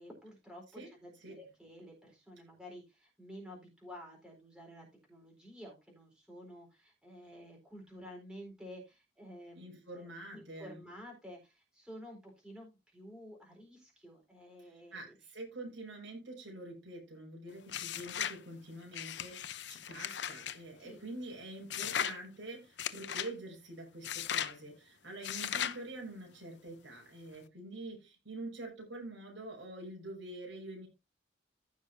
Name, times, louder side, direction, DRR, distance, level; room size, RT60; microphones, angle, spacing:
voice 1, 0.0-15.0 20.8-21.0, equal, 5° right, -1 dB, 4.1 m, -51 dB
voice 2, 9.5-10.8 14.6-30.9, right 2 dB, 85° right, 0 dB, 5.8 m, -46 dB
sound 1, 17.7-18.4 18.9-20.6 21.7-22.2 22.8-23.3 24.0-24.5 25.2-25.8, left 9 dB, 70° left, 0.7 m, -37 dB
15.0 x 6.4 x 2.7 m, 0.24 s
head